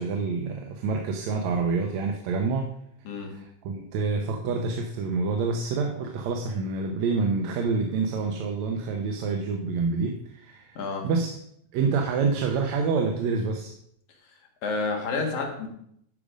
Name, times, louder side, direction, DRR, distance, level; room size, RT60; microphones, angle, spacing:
voice 1, 0.0-2.7 3.3-10.8 11.0-11.4 11.7-13.7, right 4 dB, 75° right, 3 dB, 2.0 m, -27 dB
voice 2, 10.8-11.1 14.6-15.7, left 3 dB, 80° left, 2 dB, 3.0 m, -29 dB
12.0 x 5.0 x 5.1 m, 0.71 s
omnidirectional pair, 3.3 m